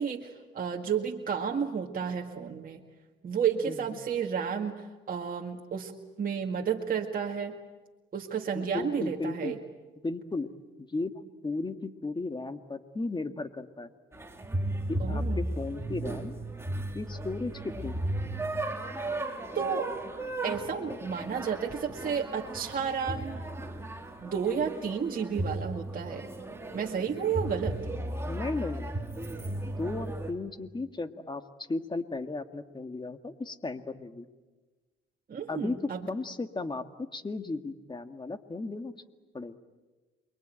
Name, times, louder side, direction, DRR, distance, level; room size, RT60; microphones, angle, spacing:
voice 1, 0.0-2.8 3.2-5.9 6.2-7.6 8.1-9.6 15.0-15.6 19.5-19.9 20.4-23.4 24.2-26.3 26.7-27.8 35.3-36.1, right 7 dB, 45° right, 1 dB, 2.0 m, -32 dB
voice 2, 8.5-9.6 10.0-10.5 10.9-11.1 11.4-13.9 14.9-16.4 16.9-18.0 28.3-28.9 29.6-31.4 31.7-34.3 35.5-35.8 36.1-39.0 39.3-39.6, left 3 dB, 20° left, 8 dB, 2.0 m, -35 dB
sound 1, 14.1-30.3, right 1 dB, 15° right, 3.5 m, -35 dB
28.5 x 23.0 x 9.1 m, 1.2 s
cardioid pair, 90°, 20 cm